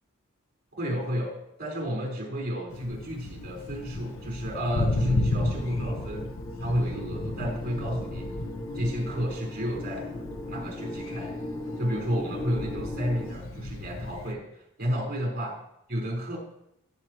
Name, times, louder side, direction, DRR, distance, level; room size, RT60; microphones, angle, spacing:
voice 1, 0.7-1.3 1.6-6.3 6.6-8.3 8.7-10.1 10.5-11.4 11.8-14.4 14.8-15.5 15.9-16.4, equal, 45° right, -2 dB, 4.4 m, -31 dB
Thunder, 2.7-14.3, left 2 dB, 65° left, 0.9 m, -34 dB
sound 1, 2.9-13.3, left 1 dB, 15° left, 1.0 m, -39 dB
17.5 x 8.4 x 3.1 m, 0.80 s
head